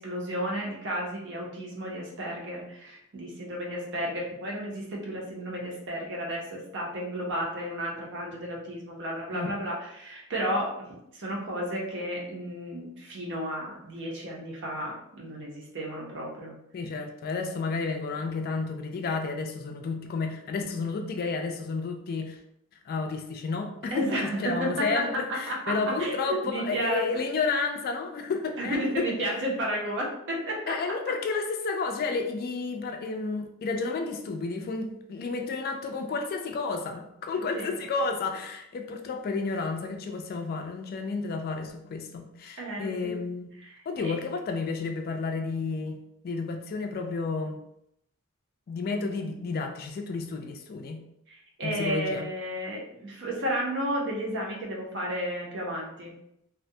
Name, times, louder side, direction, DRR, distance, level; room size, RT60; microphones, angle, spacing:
voice 1, 0.0-10.9 11.1-16.5 23.9-27.0 28.6-30.8 37.3-37.7 42.6-43.1 43.6-44.1 51.3-56.1, equal, 60° right, -2 dB, 0.7 m, -32 dB
voice 2, 16.7-22.4 22.9-29.0 30.7-43.5 43.9-46.0 46.2-47.6 48.7-51.0 51.6-52.3, left 4 dB, 45° left, 4 dB, 0.3 m, -31 dB
2.4 x 2.1 x 2.6 m, 0.78 s
head